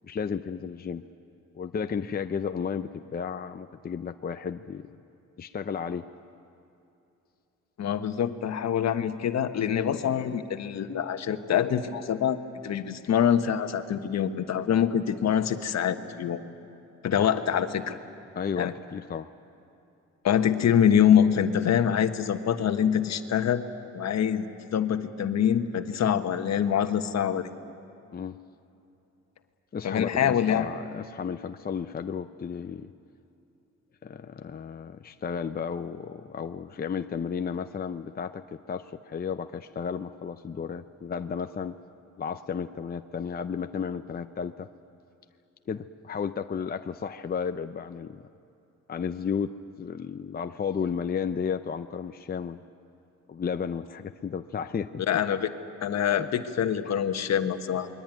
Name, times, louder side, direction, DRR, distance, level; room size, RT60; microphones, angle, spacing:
voice 1, 0.0-1.0 1.5-4.9 5.4-6.1 18.4-19.3 28.1-28.4 29.7-32.9 34.0-41.8 42.2-44.7 45.7-48.2 48.9-52.6 53.3-55.0 56.2-56.3, left 6 dB, 30° left, 8 dB, 0.7 m, -33 dB
voice 2, 7.8-16.4 17.0-18.0 18.6-18.7 20.2-23.6 23.9-27.5 29.8-30.6 55.1-55.5 55.8-57.9, left 9 dB, 60° left, 8 dB, 1.4 m, -25 dB
28.0 x 21.5 x 9.2 m, 2.8 s
cardioid pair, 85°, 30 cm